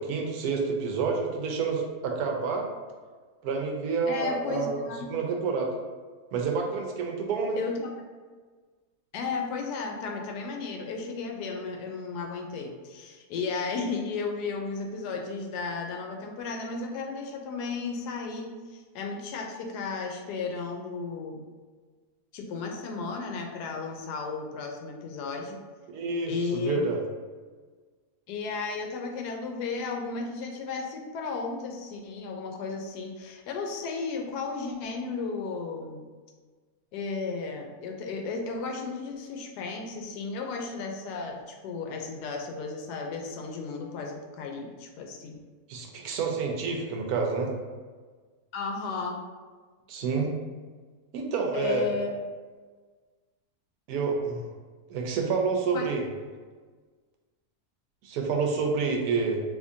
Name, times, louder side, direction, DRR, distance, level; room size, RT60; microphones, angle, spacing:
voice 1, 0.0-2.7 3.4-4.8 5.1-5.7 6.3-7.6 25.9-27.0 45.7-47.5 49.9-50.3 51.1-51.9 53.9-54.4 54.9-56.1 58.0-59.4, right 5 dB, 75° right, 1 dB, 1.1 m, -28 dB
voice 2, 4.1-5.1 7.6-7.9 9.1-21.4 22.3-25.6 26.3-26.8 28.3-36.0 36.9-45.3 48.5-49.2 51.5-52.1 55.7-55.9, left 4 dB, 90° left, 3 dB, 1.1 m, -34 dB
3.5 x 2.9 x 2.6 m, 1.5 s
omnidirectional pair, 1.7 m